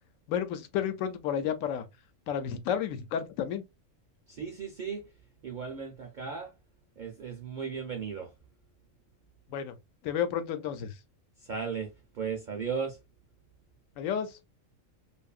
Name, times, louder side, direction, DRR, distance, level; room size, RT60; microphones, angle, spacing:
voice 1, 0.3-1.9 2.3-3.6 9.5-9.8 10.0-11.0 14.0-14.4, left 8 dB, 80° left, 1.0 m, -31 dB
voice 2, 4.3-5.1 5.4-6.5 7.0-8.3 11.4-13.0, right 6 dB, 60° right, 0.5 m, -36 dB
2.7 x 2.5 x 2.3 m
omnidirectional pair, 1.4 m